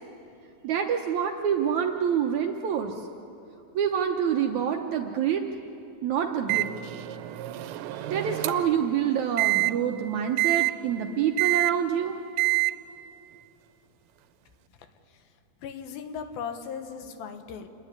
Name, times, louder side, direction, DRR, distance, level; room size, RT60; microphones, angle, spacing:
voice 1, 0.6-2.9 3.7-5.4 6.0-6.7 8.1-12.2, right 8 dB, 70° right, 3 dB, 1.8 m, -26 dB
Microwave oven, 6.5-8.8 9.4-9.7 10.4-10.7 11.4-11.7 12.4-12.7, right 20 dB, 90° right, 2.5 m, -26 dB
voice 2, 15.6-17.7, left 6 dB, 80° left, 7 dB, 2.9 m, -37 dB
27.5 x 10.5 x 9.5 m, 2.7 s
omnidirectional pair, 4.2 m